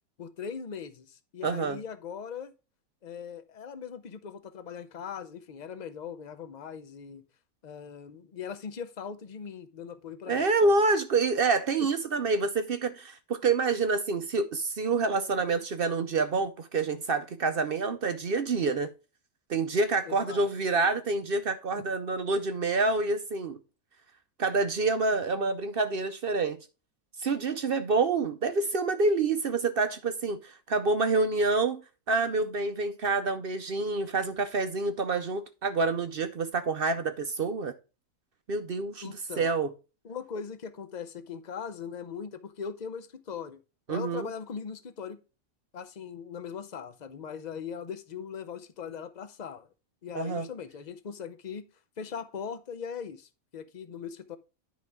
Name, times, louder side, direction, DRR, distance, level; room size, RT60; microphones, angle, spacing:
voice 1, 0.2-2.5 3.0-7.2 7.6-10.7 20.0-20.5 21.7-21.9 39.0-39.5 40.0-43.6 43.9-45.2 45.7-49.7 50.0-51.6 52.0-54.4, left 7 dB, 40° left, 0.6 m, -40 dB
voice 2, 1.4-1.8 10.3-18.9 19.5-23.6 24.4-26.6 27.2-31.8 32.1-37.7 38.5-39.7 43.9-44.3 50.1-50.5, right 3 dB, 55° right, 0.7 m, -27 dB
10.5 x 5.2 x 3.5 m
omnidirectional pair, 1.5 m